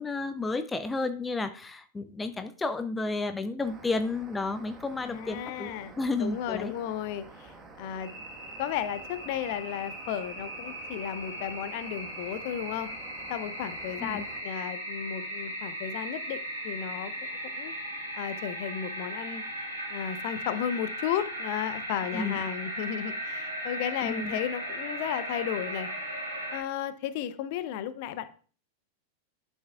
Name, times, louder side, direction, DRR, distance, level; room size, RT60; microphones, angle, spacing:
voice 1, 0.0-6.7 14.0-14.3 22.1-22.4 24.0-24.4, left 3 dB, 10° left, 11 dB, 0.5 m, -32 dB
sound 1, 3.6-14.4, right 3 dB, 20° right, 1.4 m, -50 dB
voice 2, 5.0-5.9 6.2-8.1 8.6-12.9 13.3-17.1 17.5-17.7 18.1-19.4 19.9-25.9 26.5-28.3, left 10 dB, 50° left, 13 dB, 0.7 m, -34 dB
sound 2, 8.0-26.6, right 1 dB, 85° right, 3.3 m, -37 dB
11.5 x 6.3 x 2.4 m, 0.40 s
figure-of-eight pair, 90°, 0 cm